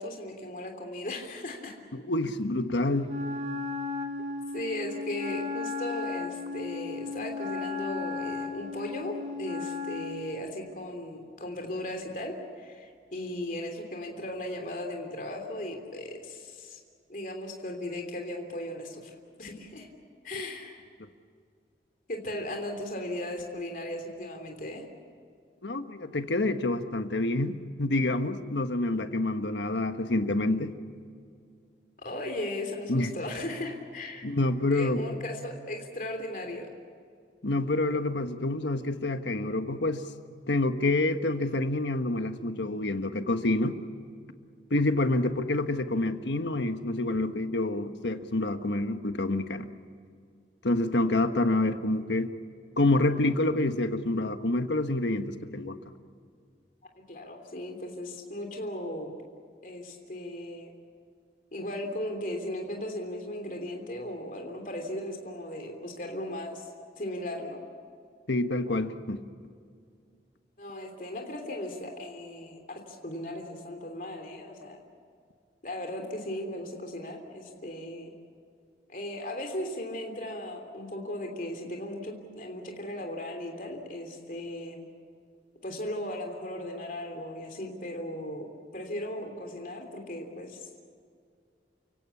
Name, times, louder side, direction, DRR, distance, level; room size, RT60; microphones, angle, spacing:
voice 1, 0.0-1.7 4.5-16.8 17.1-19.9 20.2-20.8 22.1-24.8 32.0-34.2 34.7-36.7 56.9-59.1 59.6-60.7 61.5-67.6 70.6-74.8 75.6-78.1 78.9-84.9 85.6-88.5 88.7-90.7, left 1 dB, 50° left, 3 dB, 3.2 m, -37 dB
voice 2, 1.9-3.1 25.6-30.7 32.9-33.1 34.2-35.0 37.4-40.0 40.5-43.8 44.7-49.7 50.6-52.3 52.8-55.8 68.3-69.2, left 2 dB, 90° left, 8 dB, 1.4 m, -27 dB
Wind instrument woodwind instrument, 3.0-10.3, left 4 dB, 40° right, 2.8 m, -35 dB
30.0 x 17.0 x 8.5 m, 2.2 s
head